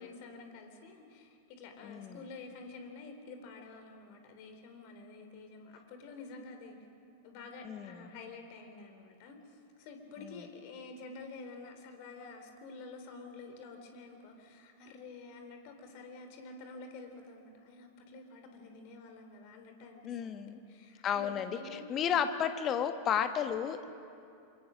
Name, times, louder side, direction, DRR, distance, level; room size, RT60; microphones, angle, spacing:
voice 1, 0.0-6.8 7.2-22.2, left 3 dB, 45° left, 5 dB, 3.4 m, -49 dB
voice 2, 1.8-2.2 7.6-8.1 10.2-10.5 20.0-20.6 21.0-23.9, left 8 dB, 30° left, 9 dB, 1.4 m, -33 dB
27.0 x 23.5 x 6.3 m, 2.5 s
figure-of-eight pair, 90°, 0 cm